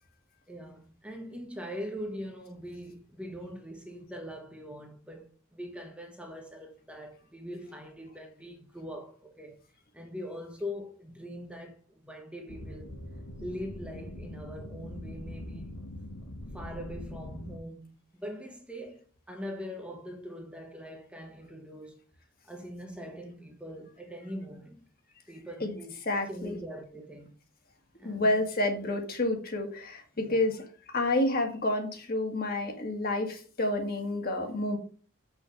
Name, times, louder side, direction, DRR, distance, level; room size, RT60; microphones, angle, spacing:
voice 1, 0.5-9.6 9.9-12.9 13.4-15.8 16.5-22.0 22.4-24.8 25.3-26.0 26.3-27.3 28.0-28.4 30.2-30.4, equal, 5° right, 1.2 m, -42 dB
sound 1, 12.5-17.6, left 1 dB, 80° left, 1.5 m, -42 dB
voice 2, 26.1-26.6 28.0-34.8, left 1 dB, 45° left, 2.0 m, -29 dB
7.2 x 6.3 x 5.4 m
head